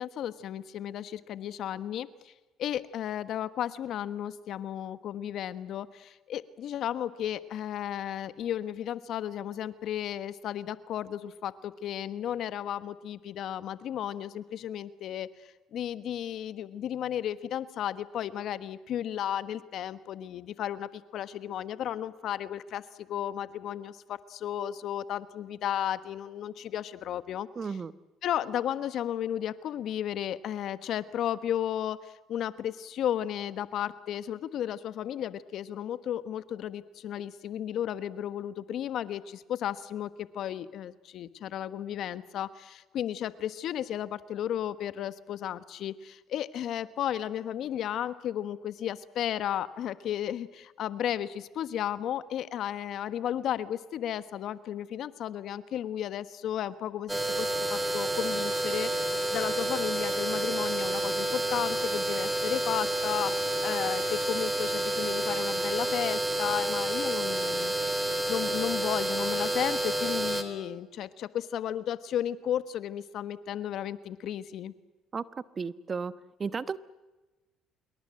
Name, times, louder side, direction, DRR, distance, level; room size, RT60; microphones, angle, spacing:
voice 1, 0.0-2.3 2.6-15.3 15.7-22.8 23.1-27.5 28.2-67.7 68.3-74.7, left 10 dB, 65° left, 13 dB, 1.3 m, -34 dB
voice 2, 27.6-27.9 75.1-75.2 75.6-76.1 76.4-76.8, right 5 dB, 35° right, 14 dB, 1.1 m, -33 dB
sound 1, 57.1-70.4, right 1 dB, 10° right, 4.1 m, -29 dB
26.5 x 22.5 x 7.7 m, 1.1 s
supercardioid pair, 80°, 0 cm